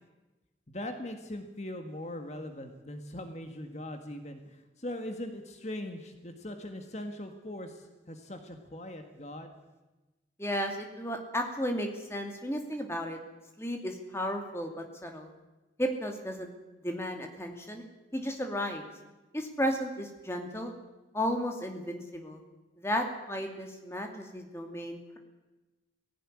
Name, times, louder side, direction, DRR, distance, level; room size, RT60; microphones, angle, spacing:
voice 1, 0.7-9.6, left 1 dB, 40° left, 5 dB, 1.8 m, -40 dB
voice 2, 10.4-13.2 13.6-15.3 15.8-16.5 16.8-17.8 18.1-18.8 19.3-20.7 21.1-22.4 22.8-25.2, equal, 15° left, 3 dB, 2.6 m, -34 dB
19.0 x 16.5 x 9.9 m, 1.1 s
head